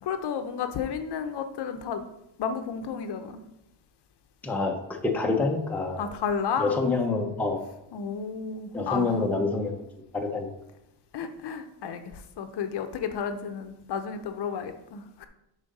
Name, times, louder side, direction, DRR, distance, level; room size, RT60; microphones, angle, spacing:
voice 1, 0.0-2.0 2.4-3.4 6.0-6.8 7.9-9.2 11.1-15.3, left 6 dB, 60° left, 8 dB, 0.7 m, -32 dB
voice 2, 4.4-4.7 5.0-6.0 6.6-7.6 8.7-9.8 10.1-10.5, left 3 dB, 5° left, 2 dB, 0.6 m, -26 dB
7.3 x 3.8 x 5.3 m, 0.85 s
cardioid pair, 155°, 47 cm